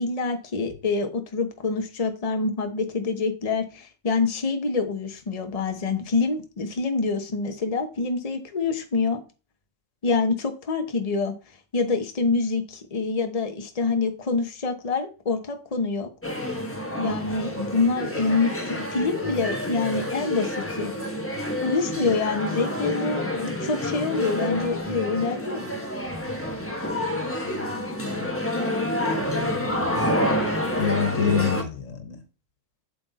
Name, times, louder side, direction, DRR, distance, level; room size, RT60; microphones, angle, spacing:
voice 1, 0.0-9.2 10.0-11.3 11.7-16.1 17.0-20.9 21.6-25.6, left 4 dB, 30° left, 6 dB, 1.0 m, -26 dB
sound 1, 16.2-31.6, left 1 dB, 10° left, 1.3 m, -28 dB
voice 2, 27.4-28.4 29.1-30.3 30.8-32.2, left 7 dB, 85° left, 8 dB, 1.7 m, -29 dB
7.7 x 6.2 x 4.1 m, 0.34 s
omnidirectional pair, 1.3 m